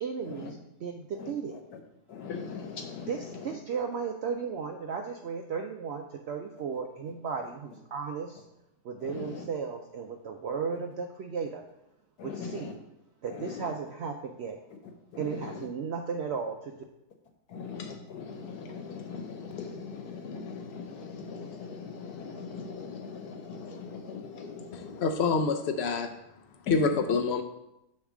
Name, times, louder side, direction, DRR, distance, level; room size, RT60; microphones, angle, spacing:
voice 1, 0.0-1.6 3.1-8.4 8.8-11.6 12.2-12.8 13.2-14.6 15.2-16.8, right 6 dB, 75° right, 0.6 m, -35 dB
voice 2, 2.1-3.1 9.0-9.4 12.2-12.6 13.3-13.6 15.1-15.4 17.5-25.0 26.7-27.0, left 5 dB, 90° left, 1.5 m, -40 dB
voice 3, 25.0-26.1 26.7-27.4, left 4 dB, 70° left, 0.6 m, -26 dB
6.7 x 3.2 x 6.0 m
omnidirectional pair, 1.6 m